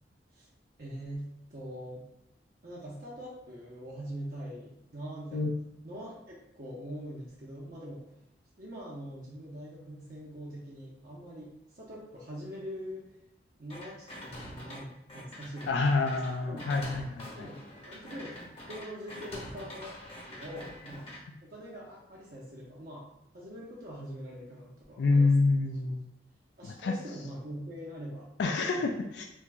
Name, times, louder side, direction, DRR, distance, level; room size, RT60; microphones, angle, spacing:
voice 1, 0.8-2.1 2.6-5.6 5.8-8.0 8.6-13.1 13.6-16.6 17.3-17.6 17.9-18.3 18.7-20.0 20.3-21.1 21.4-23.1 23.3-25.5 26.6-28.3 28.7-28.9, equal, 50° right, -6 dB, 0.7 m, -43 dB
sound 1, 13.7-14.8 15.1-21.2, left 1 dB, 35° left, 0.9 m, -45 dB
voice 2, 15.7-17.5 25.0-26.0 26.6-26.9 28.4-29.2, left 3 dB, 75° left, 3 dB, 0.3 m, -27 dB
4.4 x 2.5 x 2.2 m, 0.87 s
head